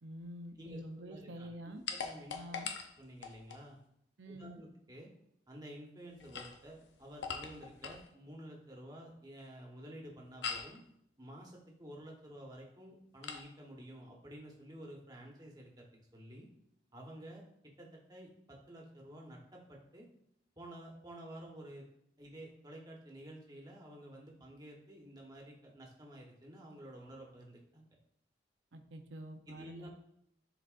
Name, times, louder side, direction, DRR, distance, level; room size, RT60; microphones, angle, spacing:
voice 1, 0.0-1.8 2.3-2.7 4.2-4.6 28.7-29.9, equal, 75° right, 5 dB, 0.7 m, -47 dB
voice 2, 0.6-2.6 3.0-3.8 4.3-5.1 5.5-10.8 11.2-16.5 16.9-17.4 17.8-20.1 20.6-21.8 22.2-27.9 29.5-29.9, right 1 dB, 20° right, -1 dB, 1.1 m, -51 dB
sound 1, 1.9-3.7 6.1-8.1 10.4-10.8 13.2-13.5, left 5 dB, 70° left, 0.7 m, -42 dB
11.0 x 4.0 x 2.5 m, 0.74 s
head